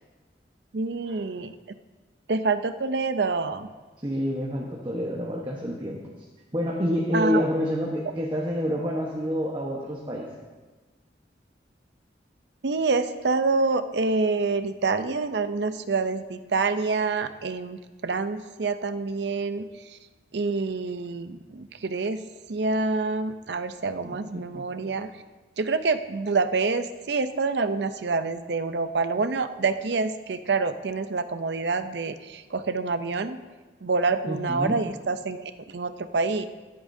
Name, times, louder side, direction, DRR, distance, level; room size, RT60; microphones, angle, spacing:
voice 1, 0.7-1.5 2.3-3.7 7.1-7.4 12.6-19.7 20.3-22.2 22.5-25.1 25.6-33.4 33.8-36.5, right 4 dB, 70° right, 10 dB, 0.6 m, -27 dB
voice 2, 4.0-6.0 6.5-10.3 24.0-24.6 34.3-34.8, equal, 25° right, -2 dB, 1.1 m, -28 dB
24.5 x 8.6 x 2.7 m, 1.3 s
head